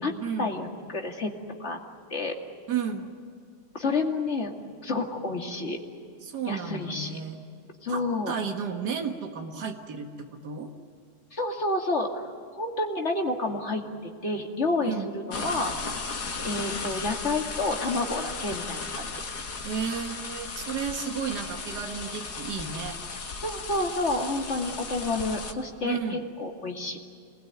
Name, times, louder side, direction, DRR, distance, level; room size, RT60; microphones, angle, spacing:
voice 1, 0.4-1.3 1.6-1.8 2.1-2.4 3.7-4.6 4.8-5.8 6.5-7.2 7.8-8.3 11.3-12.3 12.5-15.7 16.4-19.1 23.4-27.0, left 2 dB, 40° left, 1 dB, 2.7 m, -29 dB
voice 2, 2.7-3.2 6.2-7.4 7.9-10.7 14.8-15.1 19.6-23.0 25.8-26.2, right 6 dB, 80° right, 3 dB, 2.2 m, -33 dB
sound 1, 15.3-25.5, left 4 dB, 70° left, 2.4 m, -36 dB
27.0 x 20.5 x 9.4 m, 2.2 s
omnidirectional pair, 1.8 m